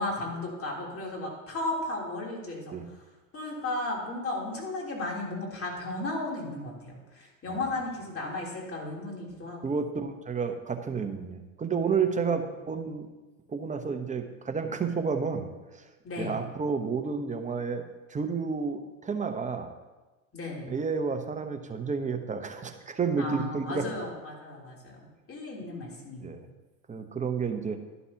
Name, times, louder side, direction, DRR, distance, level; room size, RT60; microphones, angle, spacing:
voice 1, 0.0-2.7 3.3-9.8 12.3-12.4 16.0-16.4 20.3-20.7 23.2-26.4, left 2 dB, 30° left, -2 dB, 3.4 m, -35 dB
voice 2, 9.6-13.1 13.5-15.5 16.2-17.8 18.1-19.7 20.7-23.9 26.2-26.4 26.9-27.8, right 5 dB, 15° right, 6 dB, 0.9 m, -30 dB
11.5 x 11.0 x 2.9 m, 1.2 s
hypercardioid pair, 95°, 43 cm